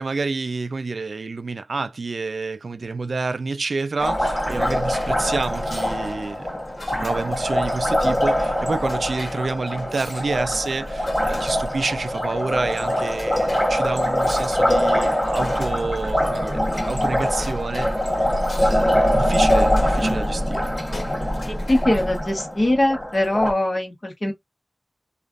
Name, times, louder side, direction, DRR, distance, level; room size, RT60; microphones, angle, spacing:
voice 1, 0.0-6.5 6.9-17.9 18.6-20.7, right 3 dB, 85° right, 0.3 m, -28 dB
Liquid, 4.0-23.5, equal, 10° left, 1.2 m, -23 dB
sound 1, 4.7-22.2, left 2 dB, 75° left, 1.2 m, -41 dB
voice 2, 21.5-24.3, left 1 dB, 45° left, 1.3 m, -22 dB
3.2 x 2.4 x 2.4 m
wide cardioid pair, 60°, 0 cm